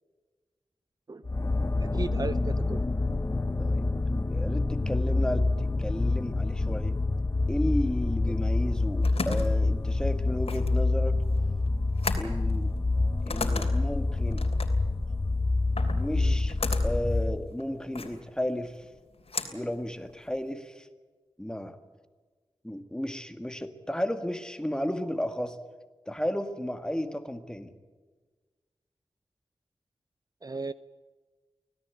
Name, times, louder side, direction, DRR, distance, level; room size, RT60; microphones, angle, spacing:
sound 1, 1.2-17.5, left 2 dB, 30° left, 0.8 m, -27 dB
voice 1, 1.8-2.8 16.2-16.4 30.4-30.7, right 3 dB, 40° right, 14 dB, 0.6 m, -35 dB
voice 2, 4.3-7.0 7.5-11.2 12.2-12.7 13.3-14.5 15.9-16.6 16.8-18.8 19.5-20.9 21.4-21.8 22.6-25.6 26.1-27.7, equal, 5° left, 8 dB, 1.9 m, -33 dB
sound 2, 8.6-20.5, left 4 dB, 75° left, 3.1 m, -38 dB
25.5 x 17.5 x 8.4 m, 1.4 s
wide cardioid pair, 100°, 10 cm